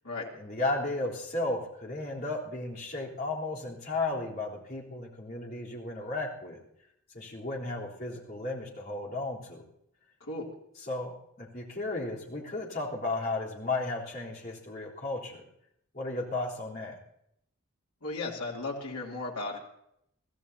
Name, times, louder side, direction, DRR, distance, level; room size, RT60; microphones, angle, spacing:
voice 1, 0.4-6.6 7.1-9.6 10.9-11.1 11.4-15.4 15.9-17.0, left 2 dB, 40° left, -5 dB, 3.6 m, -34 dB
voice 2, 18.0-19.6, left 3 dB, 80° left, -2 dB, 3.2 m, -35 dB
23.5 x 15.5 x 2.9 m, 0.75 s
head